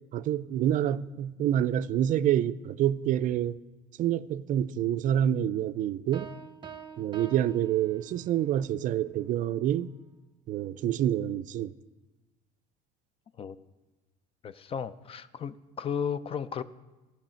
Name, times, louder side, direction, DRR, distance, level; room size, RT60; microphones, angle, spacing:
voice 1, 0.1-3.6 4.0-6.3 7.0-9.9 10.5-11.7, right 11 dB, 45° right, 0.4 m, -27 dB
sound 1, 6.1-8.5, right 7 dB, 25° right, 0.7 m, -46 dB
voice 2, 14.4-16.6, left 7 dB, 30° left, 0.4 m, -34 dB
14.5 x 5.6 x 4.4 m
supercardioid pair, 95°, 18 cm